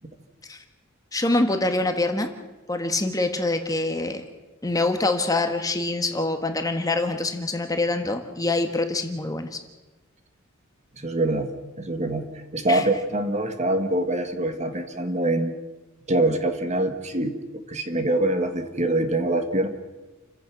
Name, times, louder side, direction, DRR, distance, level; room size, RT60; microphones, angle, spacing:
voice 1, 1.1-2.3 2.7-4.2 4.6-9.6 12.7-12.9, left 2 dB, 15° left, 5 dB, 1.6 m, -25 dB
voice 2, 11.0-11.5 11.8-15.5 16.1-19.7, right 1 dB, 35° right, 7 dB, 1.7 m, -24 dB
29.5 x 15.5 x 6.1 m, 1.2 s
head